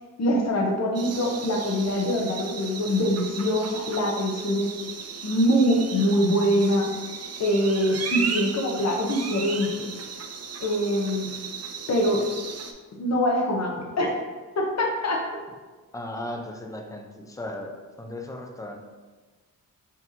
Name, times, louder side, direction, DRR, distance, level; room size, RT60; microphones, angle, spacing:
voice 1, 0.2-4.7 5.2-6.9 7.4-9.9 10.6-11.3 11.9-12.2 13.0-14.2 14.6-15.2, equal, 50° left, 0 dB, 0.8 m, -24 dB
sound 1, 0.9-12.7, right 5 dB, 50° right, 0.4 m, -36 dB
voice 2, 15.9-17.7 18.0-18.8, left 1 dB, 10° left, 3 dB, 0.4 m, -36 dB
6.0 x 2.9 x 2.7 m, 1.3 s
wide cardioid pair, 145°, 34 cm